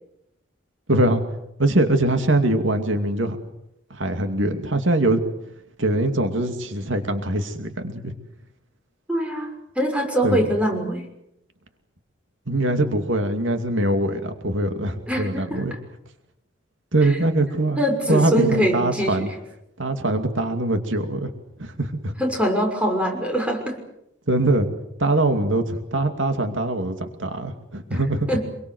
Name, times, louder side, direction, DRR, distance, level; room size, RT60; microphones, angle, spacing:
voice 1, 0.9-1.2 1.6-3.4 3.9-5.2 5.8-8.1 10.2-10.4 12.5-15.7 16.9-19.3 19.8-21.3 21.6-22.1 24.3-24.7 25.0-28.3, right 1 dB, 75° right, 7 dB, 2.6 m, -22 dB
voice 2, 9.1-9.5 9.8-11.0 15.1-15.6 17.0-17.2 17.8-19.3 22.2-23.8 27.9-28.0 28.3-28.4, right 1 dB, 5° right, 2 dB, 6.1 m, -23 dB
26.5 x 23.0 x 8.0 m, 0.82 s
head